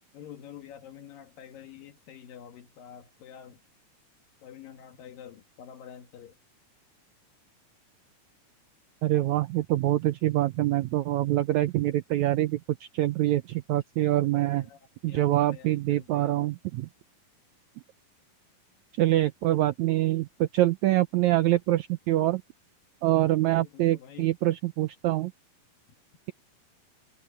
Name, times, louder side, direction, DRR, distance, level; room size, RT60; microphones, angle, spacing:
voice 1, 0.1-3.6 4.4-6.4 14.5-16.5 23.4-24.3, left 9 dB, 75° left, 3.4 m, -48 dB
voice 2, 9.0-12.6 12.9-14.7 15.0-16.9 19.0-22.4 23.0-25.3, right 15 dB, 80° right, 1.7 m, -25 dB
omnidirectional pair, 4.0 m